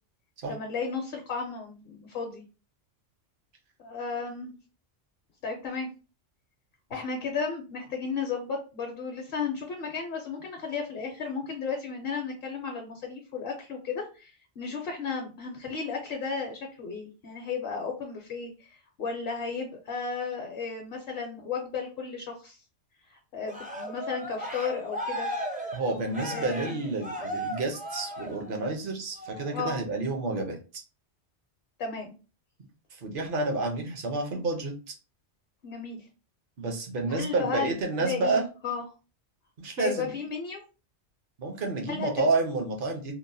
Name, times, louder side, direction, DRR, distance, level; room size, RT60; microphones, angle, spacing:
voice 1, 0.5-2.4 3.8-4.5 5.4-5.9 6.9-22.6 23.1-25.3 26.3-26.8 29.5-29.8 31.8-32.1 35.6-36.1 37.1-38.4 38.6-38.8 39.8-40.6 41.9-42.3, left 5 dB, 65° left, 2 dB, 0.8 m, -34 dB
Cheering, 23.5-28.7 29.2-29.5, equal, 15° right, 0.3 m, -36 dB
voice 2, 25.7-30.8 32.9-34.9 36.6-38.5 39.6-40.1 41.4-43.2, right 3 dB, 55° right, 3 dB, 0.8 m, -30 dB
2.9 x 2.0 x 2.6 m, 0.33 s
omnidirectional pair, 1.2 m